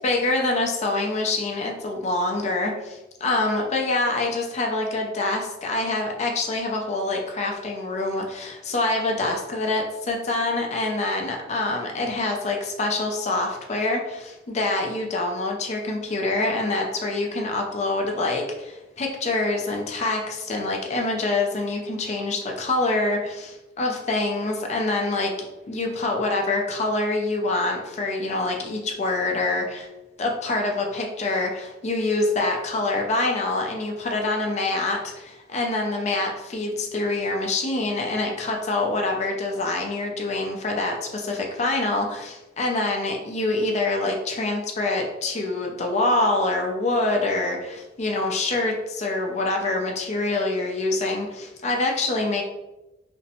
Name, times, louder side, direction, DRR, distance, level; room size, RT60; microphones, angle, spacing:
voice 1, 0.0-25.3 25.7-29.9 30.2-52.4, left 2 dB, 40° left, 1 dB, 0.4 m, -25 dB
2.5 x 2.0 x 2.7 m, 1.0 s
head